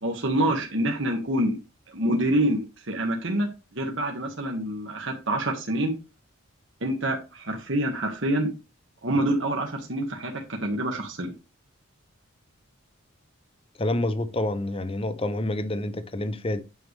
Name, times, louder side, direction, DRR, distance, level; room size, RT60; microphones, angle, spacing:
voice 1, 0.0-1.5 1.9-3.5 3.7-5.9 6.8-8.5 9.0-11.3, right 1 dB, 60° right, 1.5 m, -26 dB
voice 2, 13.8-16.6, left 1 dB, 25° left, 0.7 m, -28 dB
9.1 x 6.7 x 3.2 m
head